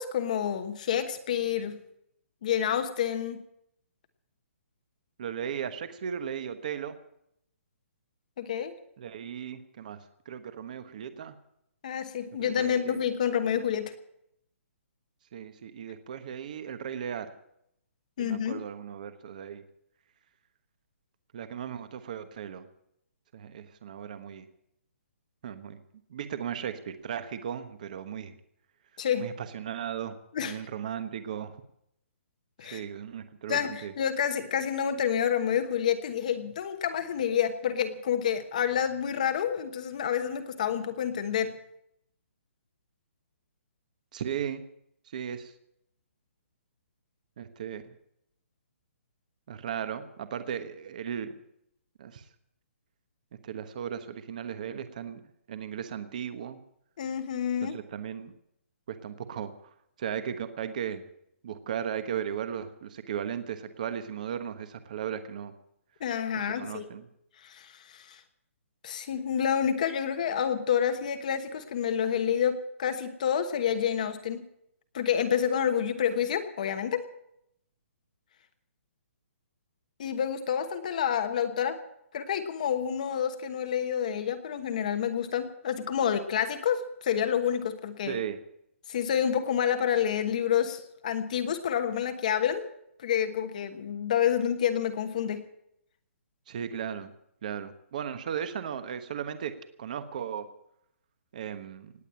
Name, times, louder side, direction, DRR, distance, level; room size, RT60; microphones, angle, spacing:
voice 1, 0.0-1.8 2.4-3.4 8.4-8.7 11.8-13.9 18.2-18.6 29.0-29.3 30.3-30.6 32.6-32.8 33.5-41.5 57.0-57.8 66.0-66.9 67.4-68.2 68.8-74.5 74.9-77.1 80.0-81.8 82.1-88.2 88.9-92.7 93.0-95.4, left 8 dB, 35° left, 8 dB, 1.2 m, -28 dB
voice 2, 5.2-6.9 9.0-10.0 10.2-11.3 12.4-13.0 15.3-17.3 18.2-19.6 21.3-22.7 23.3-24.4 25.4-25.8 26.1-28.3 29.2-30.2 30.4-31.6 32.7-33.9 44.1-44.6 45.1-45.5 47.4-47.8 49.5-51.3 52.0-52.2 53.4-55.2 55.5-56.6 57.6-58.3 58.9-59.5 60.0-61.0 61.4-65.5 66.3-67.1 88.1-88.4 96.5-97.1 97.4-99.5 99.8-100.5 101.3-101.9, right 8 dB, 35° right, 11 dB, 1.2 m, -36 dB
18.5 x 8.9 x 8.8 m, 0.76 s
hypercardioid pair, 175°, 7 cm